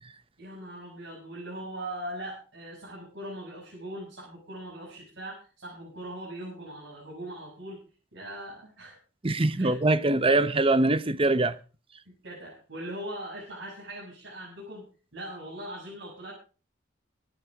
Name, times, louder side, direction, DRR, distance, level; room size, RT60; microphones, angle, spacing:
voice 1, 0.4-7.8 8.1-9.0 9.6-9.8 11.4-11.5 12.2-14.9 15.1-16.3, right 1 dB, 80° right, 6.9 m, -40 dB
voice 2, 9.2-11.5, right 2 dB, 30° right, 0.9 m, -23 dB
24.5 x 9.2 x 3.6 m
head